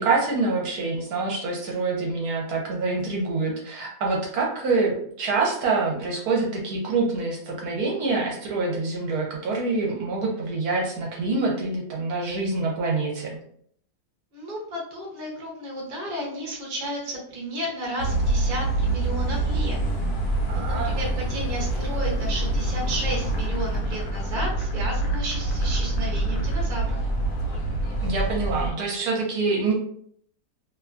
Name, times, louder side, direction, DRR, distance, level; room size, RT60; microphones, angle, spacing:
voice 1, 0.0-13.3 20.5-21.1 28.0-29.7, right 3 dB, 70° right, -2 dB, 1.1 m, -26 dB
voice 2, 14.3-19.8 20.6-27.0, equal, 40° right, -2 dB, 0.7 m, -33 dB
sound 1, 18.0-28.7, right 2 dB, 75° left, 1.1 m, -26 dB
2.8 x 2.2 x 2.4 m, 0.64 s
omnidirectional pair, 1.8 m